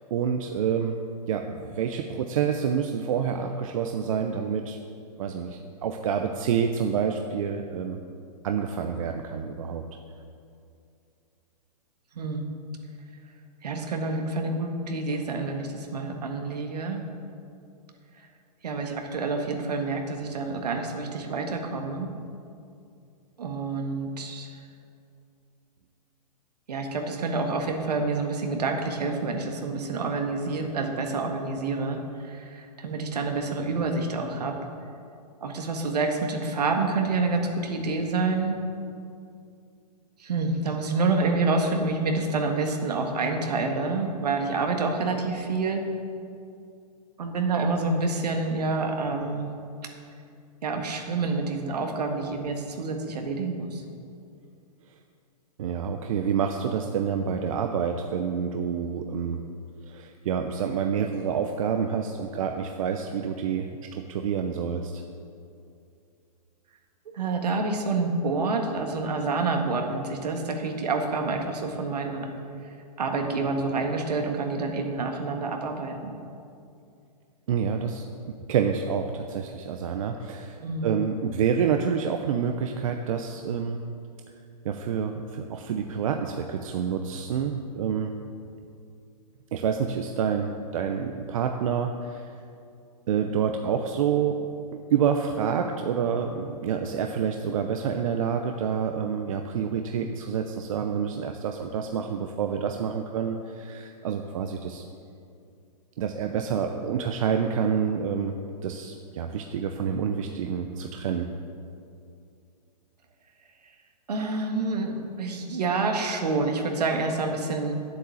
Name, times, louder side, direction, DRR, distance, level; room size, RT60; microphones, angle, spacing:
voice 1, 0.1-1.0 1.3-4.8 5.2-8.0 8.4-9.8 55.6-59.4 59.9-65.0 77.5-83.8 84.6-88.2 89.5-92.3 93.1-94.5 94.7-104.8 106.0-111.3, right 7 dB, 55° right, 5 dB, 0.7 m, -28 dB
voice 2, 12.2-12.5 13.6-17.0 18.6-22.1 23.4-24.5 26.7-34.5 35.4-38.6 40.2-45.8 47.2-49.5 50.6-53.8 67.1-72.3 73.0-76.2 80.6-80.9 114.1-117.7, right 3 dB, 75° right, 3 dB, 1.8 m, -28 dB
9.3 x 8.2 x 7.0 m, 2.4 s
hypercardioid pair, 140°, 21 cm